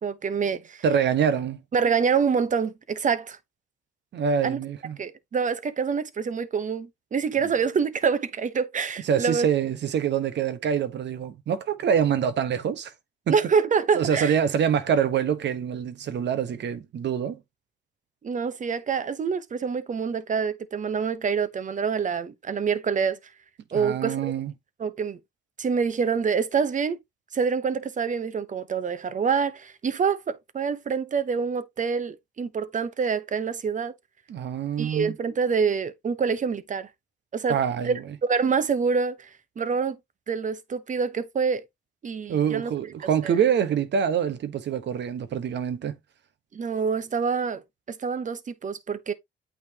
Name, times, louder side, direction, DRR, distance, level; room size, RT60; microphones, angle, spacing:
voice 1, 0.0-0.8 1.7-3.4 4.4-4.6 5.0-9.5 13.3-14.4 18.2-23.2 23.7-24.3 24.8-25.2 25.6-27.0 27.3-33.9 34.8-36.9 37.3-37.6 37.8-37.9 38.2-39.3 39.6-40.0 40.3-41.6 42.0-42.7 43.2-43.3 46.5-49.1, right 6 dB, 40° right, 0.9 m, -26 dB
voice 2, 0.8-1.6 4.1-5.0 9.0-12.9 13.3-13.4 14.0-17.4 23.7-24.5 34.3-35.1 37.5-38.0 42.3-46.0, right 8 dB, 60° right, 1.2 m, -25 dB
8.6 x 4.4 x 2.9 m
cardioid pair, 90°, 20 cm